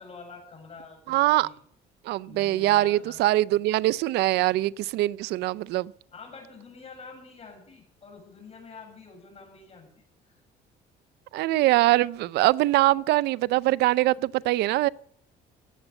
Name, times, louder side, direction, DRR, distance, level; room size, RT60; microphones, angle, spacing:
voice 1, 0.0-1.6 2.3-3.3 6.1-10.4, left 4 dB, 35° left, 7.5 m, -47 dB
voice 2, 1.1-1.5 2.1-5.9 11.3-14.9, right 17 dB, 80° right, 0.5 m, -23 dB
16.0 x 9.2 x 8.0 m
cardioid pair, 110°, 17 cm